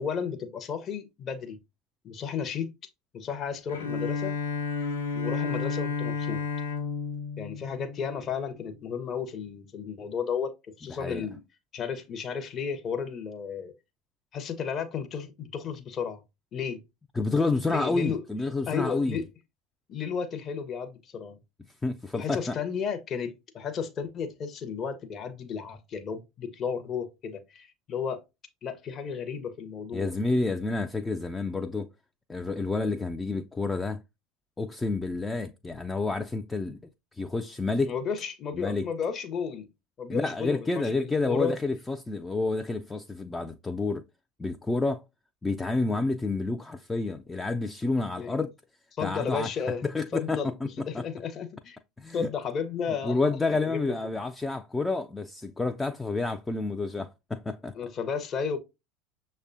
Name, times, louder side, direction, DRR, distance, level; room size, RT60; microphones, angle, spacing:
voice 1, 0.0-1.6 2.0-2.7 3.1-4.3 5.1-6.4 7.4-11.4 11.7-13.7 14.3-16.2 16.5-16.8 17.7-18.2 18.7-19.2 19.9-21.4 22.1-28.2 28.6-30.1 37.8-39.7 40.0-41.5 48.2-48.3 49.0-49.8 50.1-50.5 50.9-51.8 52.1-54.2 57.7-58.6, left 6 dB, 35° left, 0.7 m, -33 dB
Bowed string instrument, 3.7-8.6, left 4 dB, 70° left, 0.7 m, -32 dB
voice 2, 10.9-11.3 17.2-19.2 21.8-22.6 29.9-31.9 32.3-34.0 34.6-36.8 37.1-37.9 38.5-38.9 40.1-44.0 44.4-45.0 45.4-48.5 49.0-49.5 49.8-51.0 52.0-52.3 53.0-57.7, left 3 dB, 15° left, 0.3 m, -29 dB
6.4 x 2.1 x 2.5 m
figure-of-eight pair, 75°, 0 cm